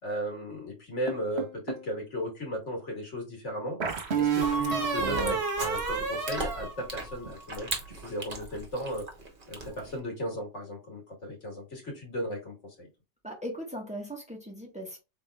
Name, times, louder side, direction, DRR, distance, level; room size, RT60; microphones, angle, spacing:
voice 1, 0.0-3.8 4.2-7.7 8.0-9.0 9.5-12.9, equal, 85° left, 2.2 m, -36 dB
sound 1, 1.1-1.9 3.8-7.4, right 5 dB, 65° right, 1.3 m, -30 dB
Chewing mastication, 3.9-10.0, right 3 dB, 50° right, 1.3 m, -39 dB
voice 2, 13.2-15.0, equal, 5° right, 1.3 m, -38 dB
4.9 x 3.9 x 2.3 m
omnidirectional pair, 1.2 m